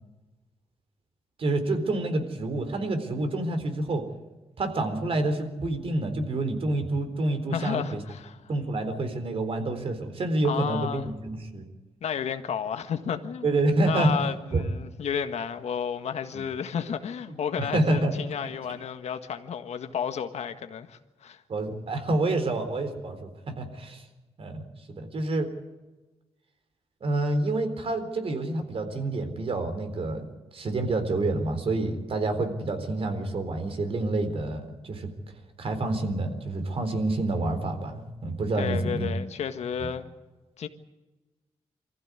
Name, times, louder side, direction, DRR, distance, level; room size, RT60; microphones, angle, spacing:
voice 1, 1.4-4.0 4.6-8.0 8.5-11.7 13.4-14.2 14.5-14.7 16.3-16.4 17.6-18.2 18.4-18.6 21.5-24.0 24.4-25.5 27.0-30.3 30.5-35.1 35.6-39.1 39.8-39.9, right 2 dB, 60° right, 3.9 m, -28 dB
voice 2, 7.5-8.4 10.4-11.1 12.0-13.5 13.8-21.4 38.6-40.0 40.6-40.7, left 7 dB, 80° left, 1.6 m, -32 dB
24.5 x 15.0 x 9.7 m
cardioid pair, 90°, 11 cm